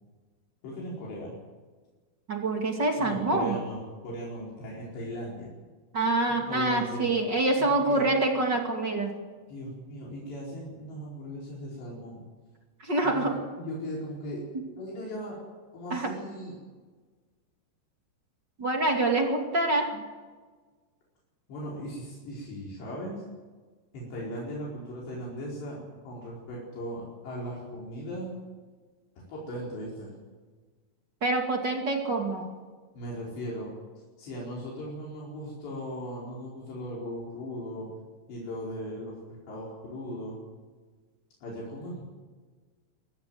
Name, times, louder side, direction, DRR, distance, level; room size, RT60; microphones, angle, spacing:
voice 1, 0.6-1.3 3.0-5.5 6.3-7.1 7.6-8.1 9.5-12.2 13.0-13.3 13.6-14.4 14.8-15.4 15.7-16.6 21.5-23.2 23.9-28.3 29.2-30.1 32.9-33.7 34.2-37.9 38.3-40.4 41.4-42.0, equal, 75° left, -5 dB, 6.8 m, -38 dB
voice 2, 2.3-3.6 5.9-9.1 12.8-13.3 15.9-16.1 18.6-20.0 31.2-32.5, right 2 dB, 30° right, 2 dB, 2.3 m, -26 dB
23.0 x 16.5 x 7.8 m, 1.4 s
omnidirectional pair, 5.0 m